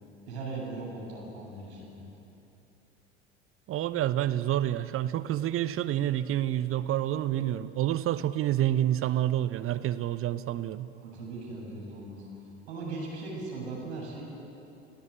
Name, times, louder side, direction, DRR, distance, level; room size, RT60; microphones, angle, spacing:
voice 1, 0.3-2.1 11.0-12.3 12.7-14.2, right 3 dB, 70° right, -3 dB, 7.9 m, -38 dB
voice 2, 3.7-10.9, right 12 dB, 40° right, 12 dB, 0.9 m, -28 dB
28.5 x 16.0 x 8.5 m, 3.0 s
figure-of-eight pair, 65°, 34 cm